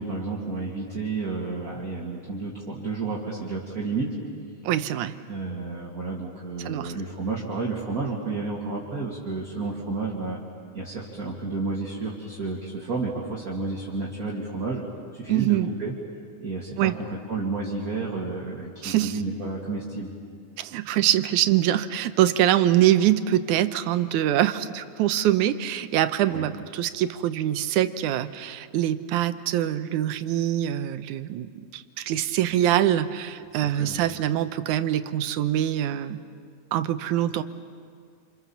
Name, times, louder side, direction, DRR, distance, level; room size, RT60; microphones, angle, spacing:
voice 1, 0.0-4.1 5.3-10.4 10.7-14.8 15.1-15.9 16.4-20.1 26.3-26.5 33.5-34.0, right 3 dB, 30° right, -3 dB, 2.7 m, -31 dB
voice 2, 4.6-5.2 6.6-6.9 15.3-15.7 16.8-16.9 18.8-19.2 20.6-36.2 36.7-37.4, right 12 dB, 90° right, 11 dB, 2.3 m, -24 dB
28.0 x 28.0 x 7.2 m, 2.3 s
omnidirectional pair, 3.4 m